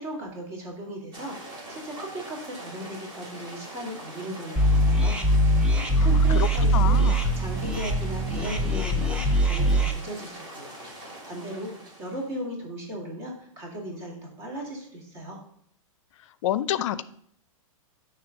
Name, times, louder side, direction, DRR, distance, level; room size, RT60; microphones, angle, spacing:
voice 1, 0.0-7.0 7.4-15.4, right 1 dB, 40° right, -1 dB, 2.0 m, -37 dB
sound 1, 1.1-12.4, right 1 dB, 25° right, 1.7 m, -43 dB
sound 2, 4.6-9.9, right 1 dB, 5° right, 0.5 m, -22 dB
voice 2, 6.0-6.5 6.7-7.2 16.4-17.0, left 12 dB, 60° left, 15 dB, 0.4 m, -28 dB
8.8 x 3.3 x 3.9 m, 0.63 s
hypercardioid pair, 135°, 18 cm